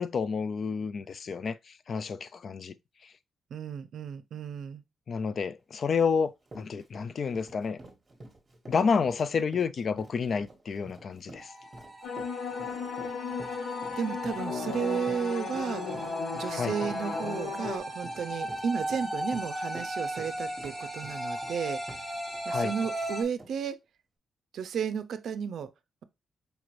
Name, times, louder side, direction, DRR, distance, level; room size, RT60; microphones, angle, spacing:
voice 1, 0.0-1.6 1.9-2.8 5.1-7.8 8.7-11.5 16.5-16.7 22.5-22.7, left 5 dB, 50° left, 0.3 m, -29 dB
voice 2, 3.5-4.8 14.0-16.1 16.4-22.1 22.4-23.8 24.5-25.7, right 7 dB, 70° right, 0.4 m, -33 dB
Run, 6.0-6.2 6.5-22.4 22.8-22.9 23.4-23.5, right 1 dB, 25° right, 1.2 m, -48 dB
sound 1, 11.4-23.2, right 1 dB, ahead, 1.3 m, -37 dB
sound 2, 12.0-17.8, left 4 dB, 85° left, 0.9 m, -35 dB
5.0 x 2.5 x 3.0 m
cardioid pair, 110°, 0 cm